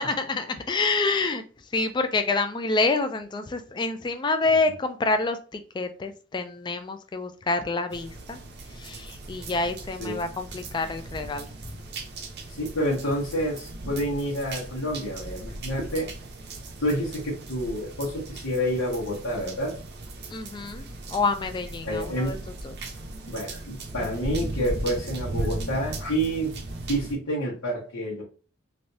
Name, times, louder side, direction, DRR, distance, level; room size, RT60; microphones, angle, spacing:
voice 1, 0.0-1.4 1.7-8.4 8.7-11.5 20.3-22.4 22.6-22.7, left 3 dB, 20° left, 7 dB, 0.3 m, -27 dB
sound 1, 7.9-27.1, right 2 dB, 55° right, 0.6 m, -37 dB
voice 2, 12.5-16.1 16.8-19.8 21.8-22.4 23.3-26.6 26.9-28.2, equal, 85° left, -7 dB, 1.2 m, -28 dB
3.2 x 2.6 x 2.7 m, 0.37 s
head